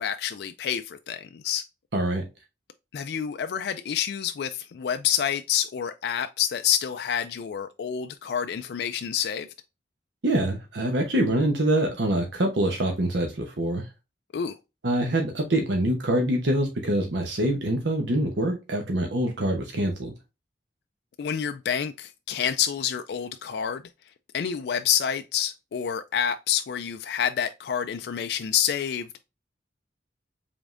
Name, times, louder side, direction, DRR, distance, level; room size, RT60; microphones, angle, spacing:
voice 1, 0.0-1.6 2.9-9.5 14.3-14.5 21.2-23.8 24.3-29.2, left 9 dB, 65° left, 0.3 m, -28 dB
voice 2, 1.9-2.2 10.2-13.8 14.8-20.1, right 1 dB, 80° right, 0.9 m, -25 dB
5.1 x 3.5 x 2.5 m
head